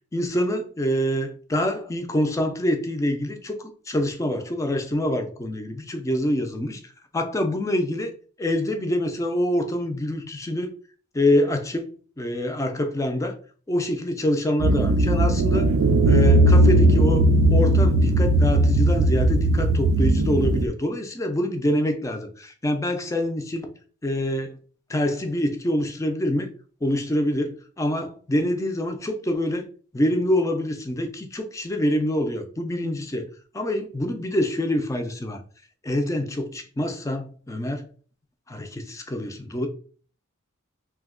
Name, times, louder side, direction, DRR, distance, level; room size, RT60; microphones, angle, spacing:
voice 1, 0.1-8.1 8.4-10.7 11.1-13.4 13.7-15.7 16.1-23.7 24.0-24.6 24.9-26.5 26.8-29.7 29.9-33.3 33.5-35.4 35.8-37.9 38.5-39.7, left 1 dB, 15° left, 0.4 m, -26 dB
sound 1, 14.6-20.7, right 1 dB, 85° right, 0.4 m, -18 dB
2.7 x 2.1 x 3.6 m
head